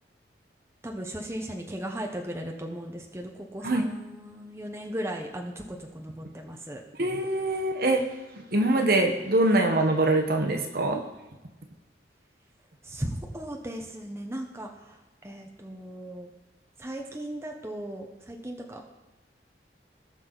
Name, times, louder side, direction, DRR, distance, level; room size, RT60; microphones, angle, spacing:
voice 1, 0.8-6.8 12.8-16.3 16.8-18.8, right 1 dB, 15° right, 2 dB, 0.9 m, -37 dB
voice 2, 7.0-8.0 8.5-11.0, right 2 dB, 55° right, 4 dB, 1.1 m, -23 dB
18.5 x 6.1 x 4.0 m, 1.1 s
head